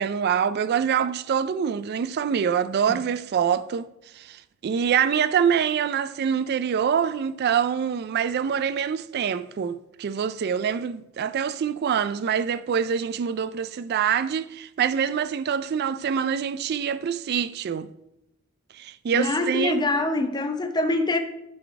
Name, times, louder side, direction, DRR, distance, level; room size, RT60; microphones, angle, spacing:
voice 1, 0.0-17.9 18.7-19.9, right 7 dB, 45° right, 0.3 m, -25 dB
voice 2, 19.1-21.2, left 2 dB, 20° left, 0.7 m, -24 dB
11.0 x 3.9 x 4.7 m
head